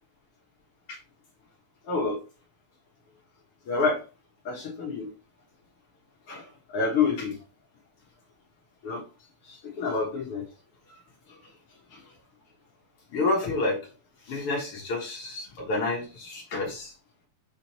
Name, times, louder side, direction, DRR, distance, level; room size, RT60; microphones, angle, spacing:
voice 1, 1.9-2.2 3.7-4.0 4.4-5.1 6.3-7.4 8.8-9.0 9.4-10.4 10.9-11.0 11.3-11.4 11.9-12.0 13.1-13.8 14.2-16.9, left 3 dB, 60° left, -1 dB, 1.5 m, -29 dB
7.8 x 3.2 x 4.2 m, 0.32 s
omnidirectional pair, 4.7 m